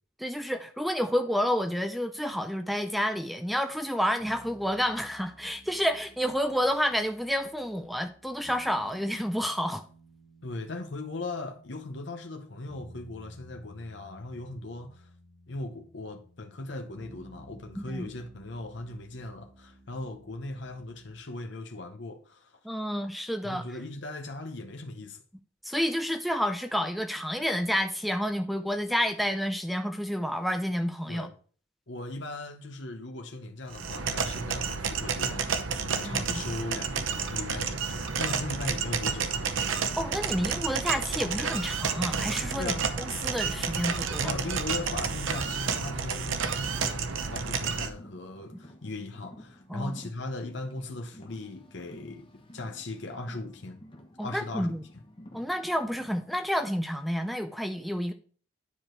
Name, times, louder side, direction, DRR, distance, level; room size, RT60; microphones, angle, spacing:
voice 1, 0.2-9.8 17.8-18.1 22.6-23.6 25.6-31.3 36.0-36.4 40.0-42.8 43.2-44.3 49.7-50.0 54.2-54.8 55.3-58.1, equal, ahead, 0.4 m, -29 dB
sound 1, 4.2-21.2, right 1 dB, 20° right, 1.8 m, -54 dB
voice 2, 10.4-15.1 15.5-22.6 23.4-25.2 31.1-31.4 31.9-39.5 42.5-42.9 44.2-53.8 54.2-55.0, left 2 dB, 65° left, 0.9 m, -38 dB
sound 2, 33.7-47.9, right 5 dB, 80° right, 0.8 m, -30 dB
Car, 45.3-56.4, left 1 dB, 25° left, 1.1 m, -52 dB
10.0 x 4.9 x 4.5 m
head